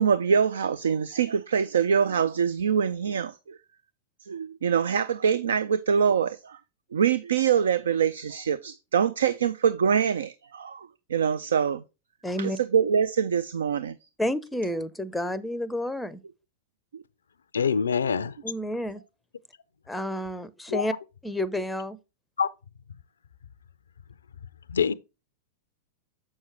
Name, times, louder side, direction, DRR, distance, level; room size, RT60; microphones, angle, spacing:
voice 1, 0.0-3.6 4.3-6.6 6.9-11.8 12.4-14.0 16.9-17.0, right 7 dB, 65° right, 0.4 m, -24 dB
voice 2, 12.2-12.6 14.2-16.2 18.4-19.0 19.9-20.9 21.2-22.0, left 1 dB, 5° left, 0.6 m, -30 dB
voice 3, 17.5-18.4 20.7-20.9 22.4-22.5 24.7-24.9, left 6 dB, 70° left, 0.4 m, -24 dB
7.4 x 6.3 x 3.2 m
figure-of-eight pair, 95°, 0 cm